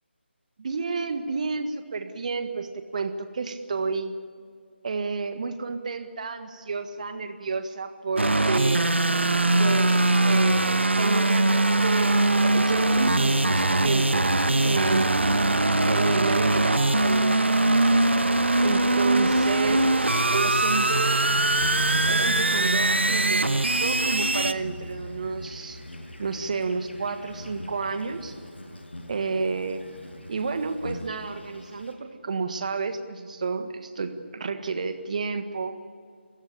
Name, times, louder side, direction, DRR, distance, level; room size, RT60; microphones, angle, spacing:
voice 1, 0.6-4.1 4.8-9.0 9.6-14.3 14.6-15.3 15.8-17.6 18.6-21.2 22.1-25.8 26.2-28.4 29.1-29.9 30.3-35.8, right 4 dB, 40° right, 9 dB, 1.7 m, -30 dB
sound 1, 8.2-24.5, right 2 dB, 75° right, 1.2 m, -22 dB
Insect, 14.9-31.9, left 1 dB, 65° left, 7.1 m, -43 dB
28.5 x 16.0 x 8.7 m, 2.1 s
figure-of-eight pair, 155°, 6 cm